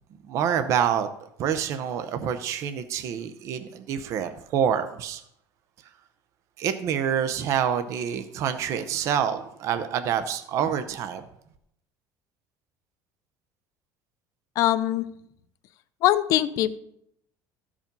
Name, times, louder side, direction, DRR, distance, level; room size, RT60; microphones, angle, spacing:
voice 1, 0.3-1.1 1.4-5.2 6.6-11.2, right 8 dB, 45° right, 9 dB, 0.7 m, -27 dB
voice 2, 14.6-15.0 16.0-16.8, left 13 dB, 50° left, 13 dB, 0.6 m, -22 dB
14.0 x 5.0 x 5.3 m, 0.74 s
cardioid pair, 170°, 7 cm